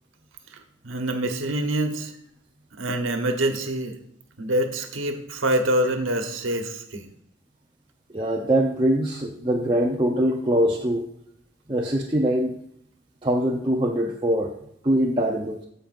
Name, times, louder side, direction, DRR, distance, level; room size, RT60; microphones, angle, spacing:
voice 1, 0.5-2.1 2.8-4.0 4.4-7.1, right 1 dB, 90° right, 5 dB, 1.2 m, -26 dB
voice 2, 8.1-11.0 11.7-12.5 13.2-14.5 14.8-15.6, right 1 dB, 25° right, -1 dB, 0.6 m, -23 dB
15.0 x 5.2 x 2.6 m, 0.70 s
head